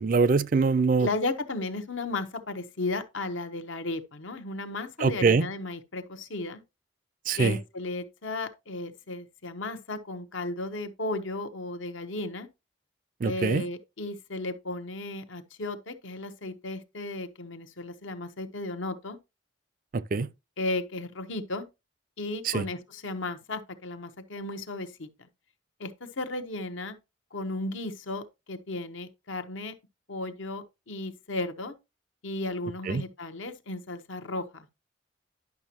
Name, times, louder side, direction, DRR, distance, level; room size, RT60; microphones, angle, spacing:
voice 1, 0.0-1.1 5.0-5.5 7.3-7.6 13.2-13.6 19.9-20.3 22.4-22.6 32.9-33.0, right 4 dB, 45° right, 0.4 m, -23 dB
voice 2, 1.0-6.6 7.3-12.5 13.2-19.2 20.6-21.7 22.2-25.1 25.8-27.0 27.3-29.7 30.1-31.8 32.2-34.7, left 2 dB, 75° left, 0.9 m, -34 dB
11.0 x 5.9 x 2.9 m
head